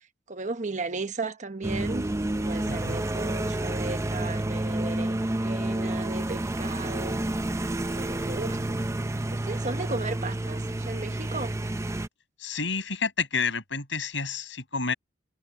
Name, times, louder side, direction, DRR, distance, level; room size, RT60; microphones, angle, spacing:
voice 1, 0.3-2.1 2.4-7.2 7.9-8.8 9.3-11.5, right 3 dB, 40° right, 1.2 m, -35 dB
sound 1, 1.6-12.1, right 1 dB, 15° right, 0.5 m, -29 dB
voice 2, 2.7-3.0 12.4-14.9, left 5 dB, 75° left, 6.7 m, -30 dB
head